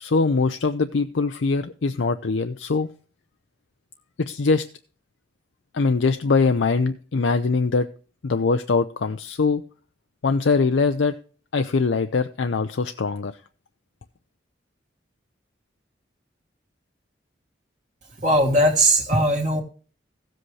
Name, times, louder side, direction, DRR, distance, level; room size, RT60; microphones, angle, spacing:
voice 1, 0.0-2.9 4.2-4.6 5.7-7.9 8.2-9.6 10.2-11.1 11.5-13.3, left 4 dB, 75° left, 0.5 m, -22 dB
voice 2, 18.2-19.6, right 1 dB, 40° right, 1.5 m, -19 dB
15.5 x 7.8 x 3.2 m
head